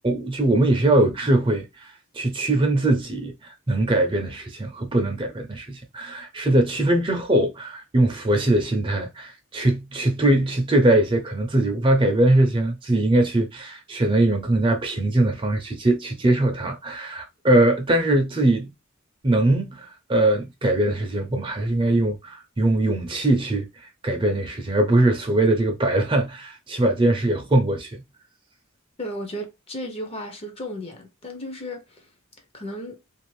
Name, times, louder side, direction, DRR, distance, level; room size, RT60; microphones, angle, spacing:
voice 1, 0.0-18.7 19.2-28.0, right 1 dB, 25° right, 0.5 m, -21 dB
voice 2, 29.0-31.8 32.5-33.0, equal, 30° left, 0.6 m, -34 dB
2.6 x 2.4 x 3.1 m
head